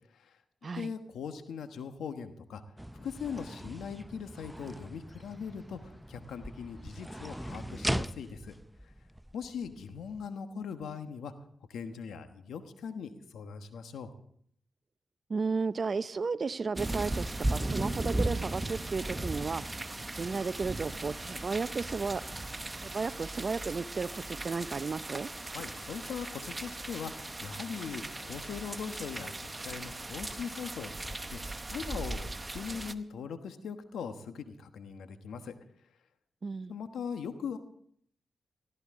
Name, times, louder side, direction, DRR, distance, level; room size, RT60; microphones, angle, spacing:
voice 1, 0.7-2.6 2.9-8.5 8.8-8.9 9.3-11.3 11.7-14.1 25.5-35.5 36.7-37.6, left 6 dB, 85° left, 8 dB, 1.2 m, -40 dB
sound 1, 2.8-10.3, equal, 5° right, 0.5 m, -40 dB
voice 2, 15.3-17.2 17.5-19.6 20.1-22.2 22.8-25.3 36.4-36.7, right 4 dB, 50° right, 16 dB, 0.6 m, -33 dB
sound 2, 16.8-32.9, right 2 dB, 25° right, 0.9 m, -37 dB
19.0 x 15.0 x 3.7 m, 0.66 s
cardioid pair, 55°, 0 cm